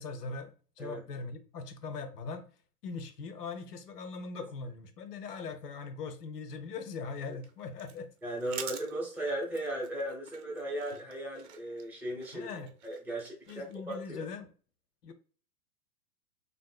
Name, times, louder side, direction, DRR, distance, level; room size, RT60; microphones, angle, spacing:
voice 1, 0.0-2.5 2.8-8.1 12.3-12.7 13.5-14.5 15.0-15.1, left 4 dB, 80° left, 0.8 m, -41 dB
sound 1, 7.1-14.0, right 7 dB, 75° right, 0.8 m, -48 dB
voice 2, 8.2-14.2, right 1 dB, 5° right, 0.8 m, -37 dB
3.5 x 2.6 x 2.3 m
hypercardioid pair, 130°, 47 cm